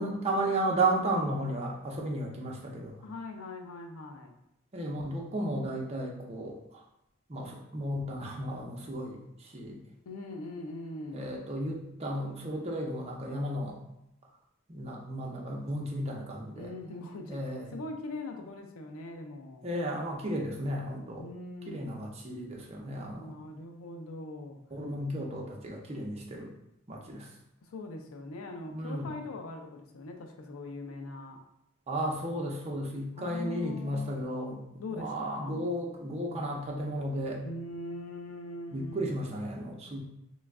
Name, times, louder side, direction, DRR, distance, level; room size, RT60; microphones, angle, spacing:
voice 1, 0.0-2.9 4.7-6.8 7.3-9.8 11.1-13.8 14.7-16.7 17.3-17.8 19.6-21.2 21.7-23.3 24.7-26.5 26.9-27.3 28.7-29.1 31.9-34.6 34.9-37.4 38.7-40.0, right 1 dB, 30° right, -1 dB, 0.6 m, -34 dB
voice 2, 3.0-4.3 10.1-11.4 16.6-17.4 17.7-19.7 21.2-21.8 23.2-24.6 27.6-31.4 33.1-34.2 34.8-35.7 37.4-39.1, left 2 dB, 80° left, 4 dB, 0.4 m, -41 dB
3.1 x 2.3 x 3.4 m, 0.81 s
head